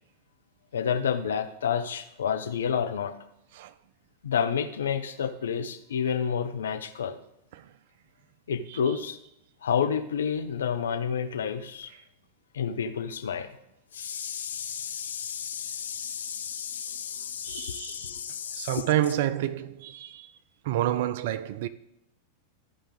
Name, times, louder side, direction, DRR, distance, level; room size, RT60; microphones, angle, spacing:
voice 1, 0.7-3.1 4.2-7.2 8.5-9.2 9.6-11.9 12.5-13.5 13.9-18.8, left 7 dB, 65° left, 0.7 m, -30 dB
voice 2, 17.4-18.2 18.6-20.3 20.6-21.7, right 13 dB, 55° right, 0.4 m, -29 dB
13.5 x 5.0 x 3.8 m
figure-of-eight pair, 90°, 0 cm